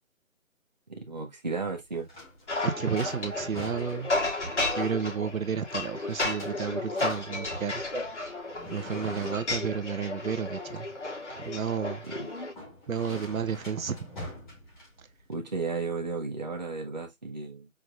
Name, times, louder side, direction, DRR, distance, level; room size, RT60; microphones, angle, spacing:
voice 1, 0.9-2.1 12.1-12.3 15.3-17.7, right 4 dB, 30° right, 0.9 m, -34 dB
sound 1, 1.7-15.3, left 1 dB, 35° left, 2.6 m, -46 dB
sound 2, 2.5-12.5, left 2 dB, 55° left, 2.5 m, -33 dB
voice 2, 2.6-4.1 4.8-7.8 8.6-10.9 11.4-12.0 12.9-14.1, right 7 dB, 80° right, 0.9 m, -31 dB
4.8 x 3.7 x 2.5 m
hypercardioid pair, 180°, 40 cm